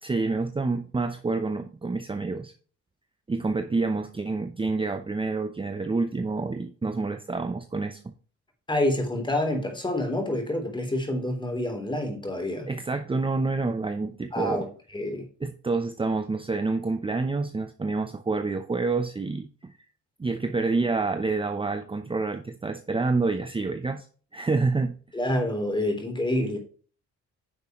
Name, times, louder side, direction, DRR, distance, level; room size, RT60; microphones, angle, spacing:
voice 1, 0.0-2.5 3.3-8.1 12.7-14.7 15.4-19.7 20.2-24.1 24.3-25.0, right 3 dB, 15° right, 8 dB, 0.8 m, -28 dB
voice 2, 8.7-12.7 14.3-14.7 14.9-15.3 25.1-26.6, left 1 dB, 15° left, 4 dB, 3.5 m, -27 dB
9.9 x 6.6 x 3.1 m, 0.41 s
cardioid pair, 90°, 30 cm